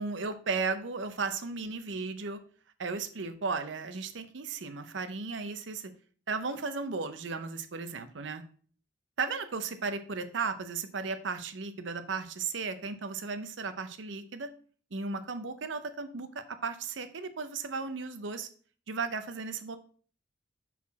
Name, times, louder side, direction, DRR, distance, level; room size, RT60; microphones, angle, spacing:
voice 1, 0.0-2.4 2.8-5.9 6.3-8.4 9.2-14.5 14.9-18.5 18.9-19.8, right 4 dB, 70° right, 10 dB, 0.7 m, -35 dB
5.8 x 4.2 x 4.1 m, 0.43 s
head